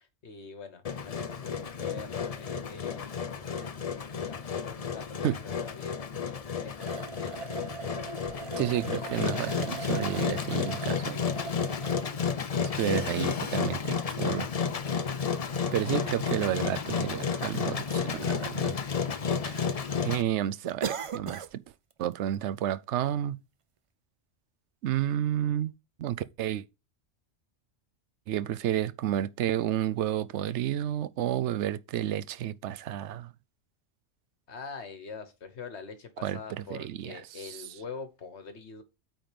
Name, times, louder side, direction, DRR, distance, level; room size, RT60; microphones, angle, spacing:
voice 1, 0.0-3.2 3.6-3.7 3.9-6.0 6.3-7.7 15.7-15.9 34.5-38.8, left 5 dB, 70° left, 1.6 m, -45 dB
Engine, 0.8-20.2, left 6 dB, 40° left, 0.6 m, -32 dB
sound 1, 6.8-12.1 12.8-12.9 14.6-14.7 14.9-15.0 16.0-16.1 16.3-16.4 17.1-17.5 17.8-17.9 18.3-19.0 19.3-19.7 20.0-20.1 20.6-21.5 21.9-22.1 22.6-22.7, right 6 dB, 55° right, 0.3 m, -40 dB
voice 2, 8.6-11.4 12.6-14.5 15.7-18.8 19.4-19.7 20.0-21.6 22.0-23.4 24.8-25.7 26.0-26.7 28.3-33.3 36.2-37.2, right 11 dB, 80° right, 0.9 m, -31 dB
8.8 x 3.9 x 5.1 m
omnidirectional pair, 1.2 m